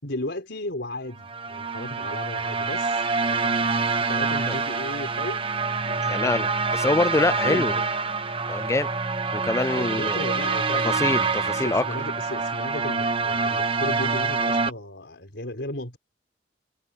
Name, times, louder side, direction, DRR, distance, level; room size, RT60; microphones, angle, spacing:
voice 1, 0.0-3.5 4.0-5.5 5.9-6.4 7.3-7.7 9.7-16.0, left 1 dB, 75° left, 4.5 m, -35 dB
sound 1, 1.2-14.7, right 4 dB, 30° right, 1.3 m, -26 dB
voice 2, 6.0-7.8 8.5-8.9 9.3-10.2 10.8-11.8, left 2 dB, 15° left, 0.3 m, -25 dB
head